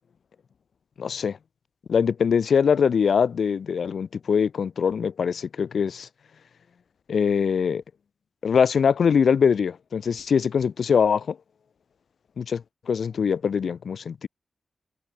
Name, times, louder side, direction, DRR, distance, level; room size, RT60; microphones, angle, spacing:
voice 1, 1.0-1.4 1.9-6.1 7.1-7.8 8.4-11.4 12.4-14.3, left 6 dB, 75° left, 1.1 m, -22 dB
wide cardioid pair, 130°, 0 cm